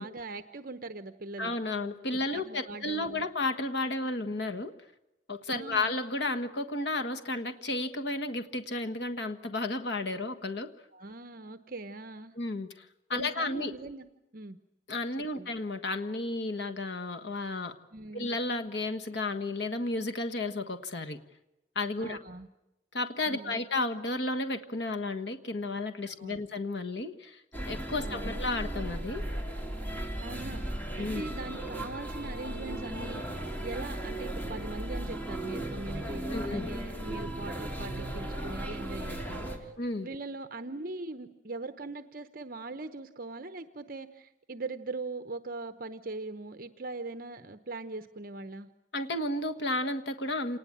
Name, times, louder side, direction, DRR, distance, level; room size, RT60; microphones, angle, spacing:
voice 1, 0.0-1.5 2.1-3.2 5.5-6.0 10.9-12.3 13.1-14.1 14.3-14.6 15.2-15.5 17.9-18.3 22.0-22.5 23.3-23.6 26.0-26.5 28.0-28.4 30.2-39.7 40.0-48.7, right 3 dB, 50° right, 9 dB, 1.0 m, -41 dB
voice 2, 1.4-4.7 5.3-10.7 12.4-12.8 13.1-13.7 14.9-17.7 18.1-21.2 21.7-22.2 22.9-27.4 27.7-29.2 31.0-31.3 36.3-36.7 39.8-40.1 48.9-50.6, left 2 dB, 65° left, 6 dB, 1.5 m, -32 dB
sound 1, 27.5-39.6, right 1 dB, 10° left, 3.1 m, -36 dB
27.5 x 19.5 x 8.7 m, 0.94 s
head